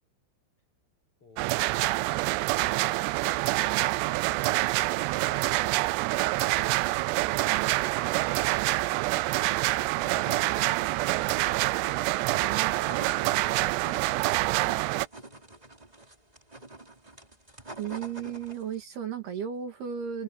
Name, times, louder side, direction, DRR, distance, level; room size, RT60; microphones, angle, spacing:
voice 1, 1.2-1.6 2.7-5.8 6.1-10.5 11.4-12.0 12.4-15.6, left 2 dB, 30° left, 6.4 m, -57 dB
sound 1, 1.4-15.1, right 20 dB, 85° right, 2.5 m, -26 dB
sound 2, 12.3-18.8, right 2 dB, 10° right, 3.5 m, -46 dB
voice 2, 12.4-12.8 17.8-20.2, right 8 dB, 60° right, 4.3 m, -35 dB
omnidirectional pair, 5.5 m